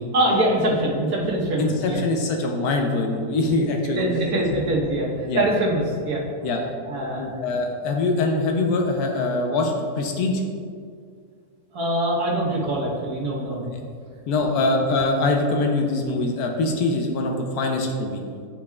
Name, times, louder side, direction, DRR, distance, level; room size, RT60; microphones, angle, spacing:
voice 1, 0.1-2.0 4.0-6.2 6.9-7.3 11.7-13.7 14.4-14.6, right 1 dB, 70° right, -3 dB, 1.7 m, -24 dB
voice 2, 1.6-4.1 5.3-5.4 6.4-6.6 7.2-10.4 14.3-18.2, left 2 dB, 85° left, 2 dB, 1.2 m, -23 dB
10.5 x 4.8 x 2.4 m, 2.1 s
omnidirectional pair, 1.6 m